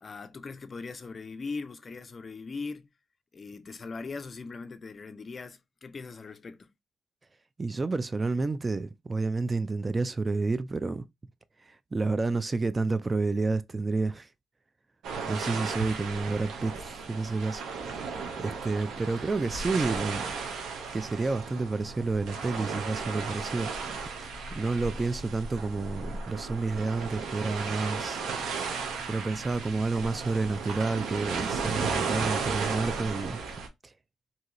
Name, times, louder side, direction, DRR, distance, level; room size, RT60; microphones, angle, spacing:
voice 1, 0.0-2.9 3.3-6.7 19.2-19.3, left 4 dB, 40° left, 0.4 m, -40 dB
voice 2, 7.6-11.0 11.6-14.3 15.3-17.6 18.0-20.3 20.9-23.7 24.5-28.2 29.0-33.4 33.8-33.9, right 3 dB, 30° right, 0.3 m, -30 dB
sound 1, 15.0-33.7, right 5 dB, 80° right, 0.7 m, -35 dB
2.7 x 2.4 x 2.9 m
cardioid pair, 70°, 0 cm